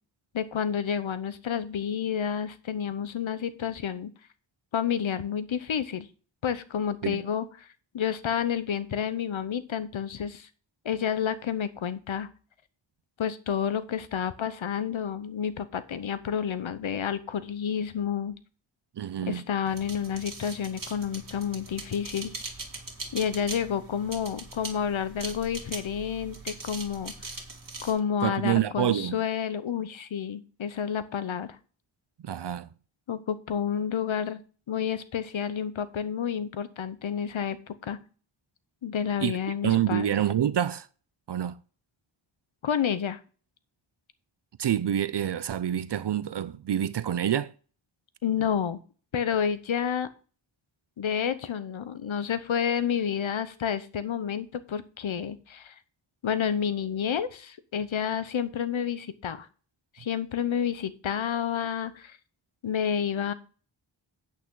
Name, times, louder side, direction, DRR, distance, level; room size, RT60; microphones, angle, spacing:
voice 1, 0.3-4.1 4.7-6.1 6.4-7.7 7.9-10.5 10.8-12.3 13.2-18.4 19.3-22.3 23.1-27.3 27.8-31.6 33.1-34.4 34.7-38.0 38.8-40.1 42.6-43.2 48.2-48.8 49.1-50.1 51.0-55.7 56.2-59.5 60.0-62.2 62.6-63.3, left 8 dB, 80° left, 0.9 m, -30 dB
voice 2, 19.0-19.4 28.2-29.2 32.2-32.7 39.2-39.4 39.6-40.9 41.3-41.6 44.6-47.5, right 10 dB, 60° right, 0.5 m, -27 dB
sound 1, 19.7-27.9, right 3 dB, 45° right, 2.4 m, -41 dB
8.7 x 8.5 x 3.8 m
wide cardioid pair, 90°, 46 cm